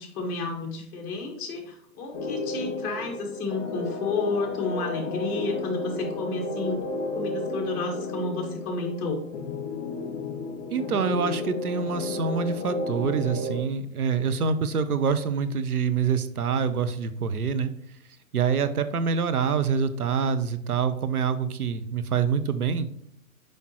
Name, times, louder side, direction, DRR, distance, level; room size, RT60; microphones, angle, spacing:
voice 1, 0.0-6.8 7.1-9.2, left 3 dB, 25° left, 1 dB, 1.6 m, -31 dB
sound 1, 2.1-13.6, left 2 dB, 55° left, 1.6 m, -32 dB
voice 2, 10.7-17.7 18.3-22.9, right 6 dB, 90° right, 11 dB, 0.8 m, -26 dB
6.4 x 5.2 x 3.0 m, 0.70 s
hypercardioid pair, 135°, 43 cm